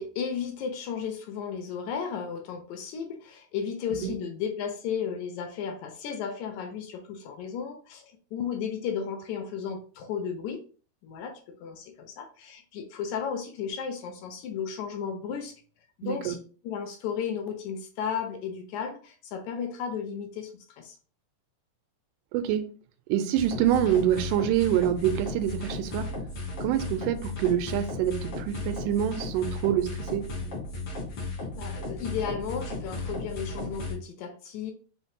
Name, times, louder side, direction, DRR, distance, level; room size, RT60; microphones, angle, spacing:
voice 1, 0.0-10.6 11.0-15.5 16.0-16.4 16.6-21.0 31.4-34.7, left 7 dB, 75° left, 1.8 m, -34 dB
voice 2, 16.0-16.4 22.3-22.7 23.1-26.1 26.6-30.3, right 11 dB, 90° right, 2.1 m, -26 dB
sound 1, 23.4-33.9, left 2 dB, 55° left, 2.0 m, -35 dB
5.7 x 3.0 x 2.7 m
omnidirectional pair, 3.7 m